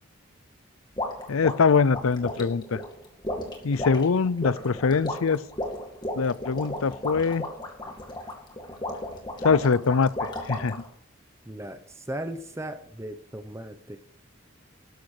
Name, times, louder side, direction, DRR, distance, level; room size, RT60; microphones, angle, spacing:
sound 1, 1.0-10.9, left 1 dB, 20° left, 2.1 m, -34 dB
voice 1, 1.3-2.8 3.6-5.4 6.2-7.5 9.4-10.8, left 5 dB, 90° left, 0.5 m, -23 dB
voice 2, 11.5-14.0, right 1 dB, 15° right, 0.8 m, -37 dB
13.0 x 10.5 x 4.9 m
head